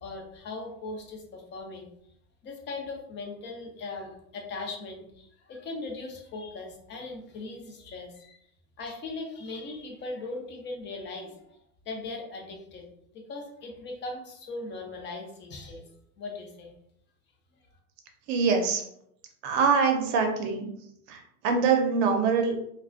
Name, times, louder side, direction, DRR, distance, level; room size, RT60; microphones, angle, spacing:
voice 1, 0.0-1.9 2.4-8.4 8.8-11.5 11.9-15.8 16.2-16.7, left 3 dB, 25° left, 1 dB, 0.5 m, -39 dB
voice 2, 18.3-18.8 19.4-20.7 21.1-22.5, right 5 dB, 55° right, 4 dB, 0.7 m, -24 dB
2.3 x 2.2 x 2.4 m, 0.73 s
hypercardioid pair, 110°, 45 cm